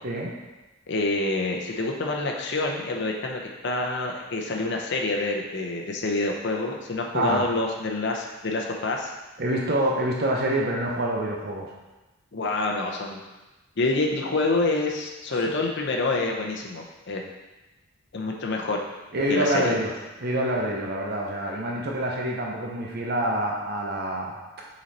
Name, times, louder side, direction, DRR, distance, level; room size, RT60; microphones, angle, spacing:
voice 1, 0.0-0.3 7.1-7.5 9.4-11.7 15.3-15.4 19.1-19.9 20.2-24.7, right 1 dB, 55° right, -2 dB, 0.8 m, -26 dB
voice 2, 0.9-9.1 12.3-13.2 13.8-17.2 18.1-18.8 19.3-19.7, left 2 dB, 60° left, 0 dB, 0.7 m, -27 dB
6.2 x 4.1 x 4.1 m, 1.1 s
head